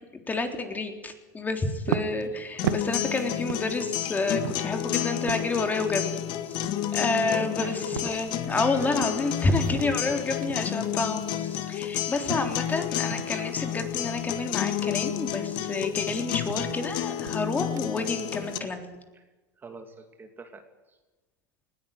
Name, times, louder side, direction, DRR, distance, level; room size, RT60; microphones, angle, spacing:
voice 1, 0.3-6.5 6.9-18.9, left 3 dB, 15° left, 5 dB, 3.7 m, -29 dB
sound 1, 1.7-12.8 13.1-13.5 13.9-18.2, right 11 dB, 85° right, 1.4 m, -38 dB
sound 2, 2.6-18.6, left 11 dB, 55° left, 2.1 m, -31 dB
voice 2, 7.2-7.8 8.8-8.9 10.1-10.2 11.8-11.9 12.2-12.4 16.0-16.2 19.6-20.6, right 4 dB, 20° right, 6 dB, 2.4 m, -43 dB
20.0 x 17.0 x 9.4 m, 1.2 s
supercardioid pair, 115°, 10 cm